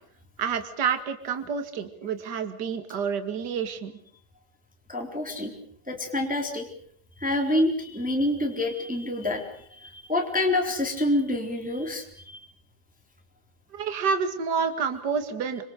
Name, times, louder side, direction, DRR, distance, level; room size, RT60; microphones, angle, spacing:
voice 1, 0.4-3.9 13.7-15.6, right 6 dB, 35° right, 9 dB, 2.1 m, -28 dB
voice 2, 4.9-5.5 5.9-6.7 7.2-12.5, left 1 dB, ahead, 2 dB, 3.5 m, -27 dB
27.0 x 26.0 x 6.7 m, 0.64 s
omnidirectional pair, 4.1 m